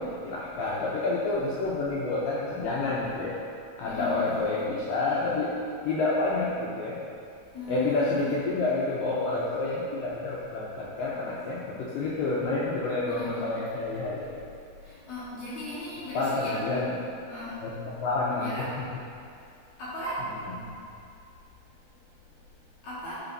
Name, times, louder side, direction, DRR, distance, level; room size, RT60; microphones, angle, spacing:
voice 1, 0.0-3.4 3.8-5.5 5.8-7.0 7.7-14.4 16.1-17.0 17.6-19.0 20.5-20.7, left 3 dB, 85° left, -6 dB, 1.9 m, -29 dB
voice 2, 3.8-4.3 7.5-8.1 13.1-13.4 14.8-16.8 17.3-17.5 18.4-18.7 19.8-20.2 22.8-23.2, left 1 dB, 60° left, -10 dB, 2.2 m, -36 dB
11.5 x 4.0 x 4.0 m, 2.5 s
omnidirectional pair, 4.8 m